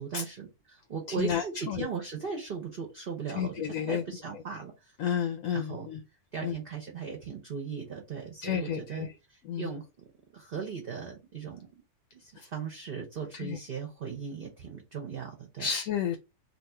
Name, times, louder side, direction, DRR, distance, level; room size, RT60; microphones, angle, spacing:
voice 1, 0.0-4.9 5.5-5.9 6.3-9.8 10.3-11.7 12.1-15.7, right 6 dB, 45° right, 2 dB, 0.8 m, -38 dB
voice 2, 1.2-1.9 3.3-4.0 4.3-4.4 5.0-6.0 6.4-6.5 8.4-9.1 9.4-9.7 12.4-12.5 13.3-13.6 15.6-16.2, left 8 dB, 70° left, 6 dB, 0.9 m, -31 dB
3.0 x 2.5 x 4.3 m, 0.27 s
omnidirectional pair, 1.6 m